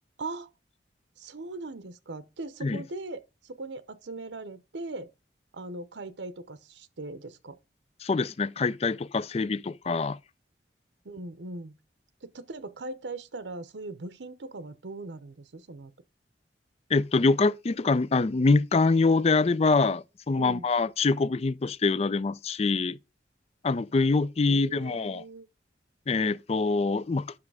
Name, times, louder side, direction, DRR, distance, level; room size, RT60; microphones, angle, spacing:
voice 1, 0.2-0.5 1.2-5.1 5.5-7.6 11.0-11.8 12.2-15.9 20.4-20.7 24.5-25.5, right 2 dB, 75° right, 0.8 m, -40 dB
voice 2, 8.0-10.2 16.9-23.0 23.6-25.2 26.1-27.3, left 3 dB, 35° left, 0.4 m, -25 dB
8.7 x 6.0 x 4.8 m
head